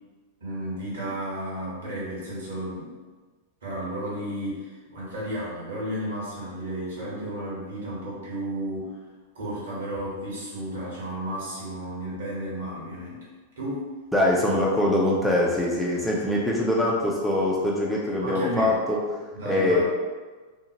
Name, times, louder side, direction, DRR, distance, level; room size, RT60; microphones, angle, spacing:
voice 1, 0.4-3.0 3.6-9.0 9.3-13.2 13.6-13.9 18.2-18.8 19.3-19.8, right 1 dB, 70° right, -6 dB, 1.1 m, -33 dB
voice 2, 14.1-19.0 19.5-19.8, left 1 dB, ahead, -5 dB, 0.4 m, -23 dB
2.7 x 2.0 x 2.9 m, 1.3 s
figure-of-eight pair, 95°, 0 cm